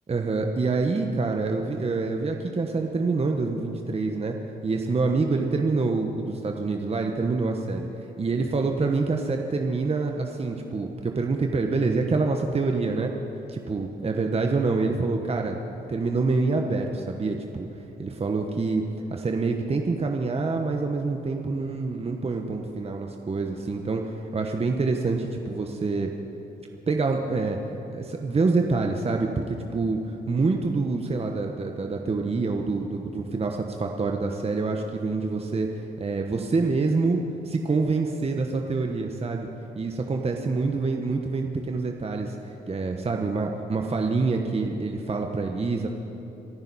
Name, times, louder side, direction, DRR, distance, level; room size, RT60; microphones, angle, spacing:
voice 1, 0.1-4.4 4.6-13.1 13.5-15.6 15.9-17.7 18.0-18.8 19.1-26.1 26.9-27.6 27.9-30.0 30.3-37.2 37.4-39.5 39.8-45.9, right 3 dB, 35° right, 3 dB, 1.2 m, -26 dB
28.0 x 10.0 x 4.2 m, 3.0 s
supercardioid pair, 65°, 19 cm